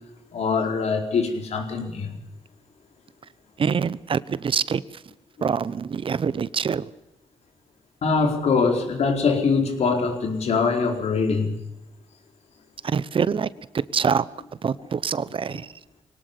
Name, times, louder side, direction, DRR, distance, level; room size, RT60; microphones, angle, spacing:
voice 1, 0.3-2.2 8.0-11.6, left 4 dB, 75° left, 5 dB, 4.6 m, -23 dB
voice 2, 3.6-5.0 5.4-6.9 12.8-13.5 13.7-14.2 14.6-15.7, right 6 dB, 50° right, 18 dB, 0.9 m, -25 dB
23.0 x 18.5 x 6.9 m, 0.89 s
cardioid pair, 105°, 11 cm